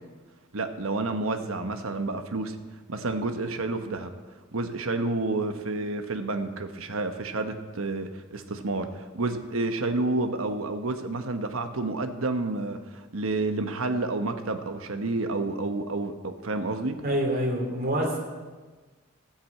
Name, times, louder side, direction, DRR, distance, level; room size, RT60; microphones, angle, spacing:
voice 1, 0.5-2.5 2.9-4.1 4.5-17.0, right 2 dB, 90° right, 7 dB, 1.1 m, -30 dB
voice 2, 17.0-18.2, equal, 45° right, 0 dB, 3.2 m, -26 dB
13.5 x 8.7 x 8.4 m, 1.3 s
head